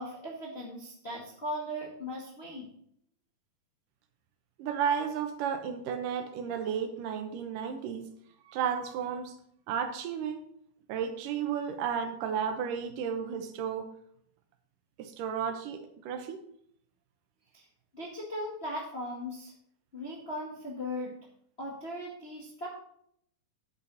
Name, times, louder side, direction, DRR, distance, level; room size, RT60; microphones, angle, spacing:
voice 1, 0.0-2.7 17.5-17.6 17.9-19.5 19.9-21.1 21.6-22.7, left 1 dB, 25° left, -4 dB, 1.3 m, -38 dB
voice 2, 4.6-8.1 8.5-9.3 9.7-10.4 10.9-13.9 15.0-16.4, right 7 dB, 80° right, 5 dB, 2.6 m, -33 dB
9.5 x 8.5 x 4.1 m, 0.68 s
omnidirectional pair, 3.8 m